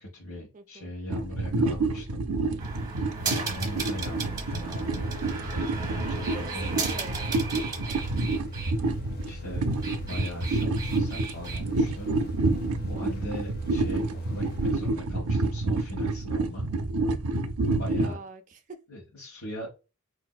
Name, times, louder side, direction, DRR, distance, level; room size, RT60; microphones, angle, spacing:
voice 1, 0.0-2.7 3.2-6.9 9.3-9.7 9.9-12.2 12.9-16.7 17.8-18.2 18.9-19.7, left 1 dB, 85° left, 1.0 m, -39 dB
voice 2, 0.5-0.9 6.1-7.4 7.8-8.0 18.0-18.8, right 3 dB, 35° right, 0.5 m, -44 dB
sound 1, 1.1-18.2, right 2 dB, 90° right, 0.4 m, -28 dB
sound 2, 2.6-8.7 9.6-11.6, right 4 dB, 20° right, 1.0 m, -36 dB
sound 3, 3.7-15.4, left 2 dB, 45° left, 0.5 m, -44 dB
4.0 x 2.5 x 2.2 m
head